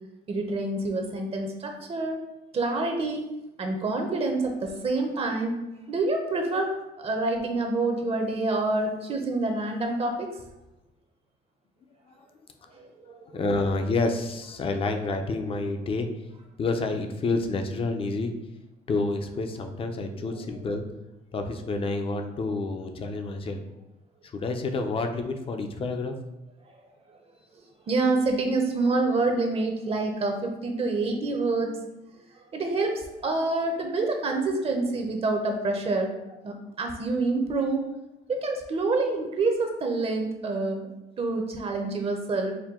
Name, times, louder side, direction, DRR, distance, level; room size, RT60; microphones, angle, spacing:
voice 1, 0.3-2.3 2.5-3.3 3.6-5.5 5.9-10.3 12.7-13.3 20.2-20.3 27.1-27.2 27.5-31.8 32.4-37.9 38.3-40.9 41.2-42.5, right 3 dB, 35° right, 3 dB, 0.6 m, -27 dB
voice 2, 13.3-16.1 16.6-18.3 18.9-20.8 21.3-23.6 24.3-26.1, left 3 dB, 35° left, 6 dB, 0.5 m, -28 dB
4.5 x 2.1 x 3.6 m, 0.95 s
cardioid pair, 110°, 17 cm